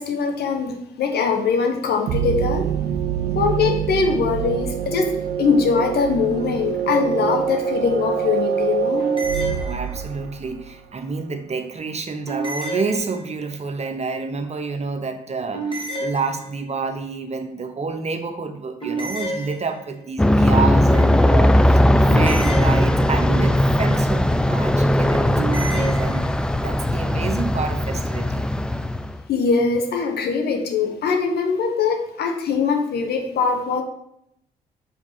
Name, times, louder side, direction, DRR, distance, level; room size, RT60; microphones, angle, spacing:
voice 1, 0.0-2.7 3.3-9.0 29.3-33.8, left 5 dB, 60° left, 4 dB, 1.1 m, -22 dB
sound 1, 2.1-10.7, right 8 dB, 70° right, 0.4 m, -25 dB
sound 2, 9.0-10.3 12.3-13.6 15.5-16.8 18.8-20.1 22.1-23.4 25.3-26.3, right 2 dB, 25° left, 2.1 m, -30 dB
voice 2, 9.5-21.8 22.1-26.2 26.6-28.5, right 4 dB, 35° right, 7 dB, 0.9 m, -29 dB
Aircraft, 20.2-29.2, left 1 dB, 5° left, 0.4 m, -18 dB
5.4 x 4.5 x 4.9 m, 0.74 s
figure-of-eight pair, 40°, 19 cm